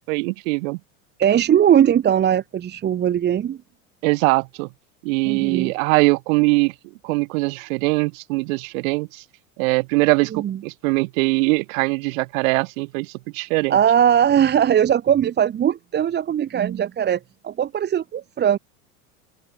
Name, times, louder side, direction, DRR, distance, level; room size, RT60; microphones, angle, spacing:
voice 1, 0.1-0.8 4.0-4.7 5.0-6.7 7.0-9.2 9.6-13.8, right 26 dB, 65° right, 1.0 m, -21 dB
voice 2, 1.2-3.6 5.3-5.7 10.3-10.6 13.7-18.6, right 9 dB, 25° right, 0.7 m, -19 dB
open air
hypercardioid pair, 90°, 43 cm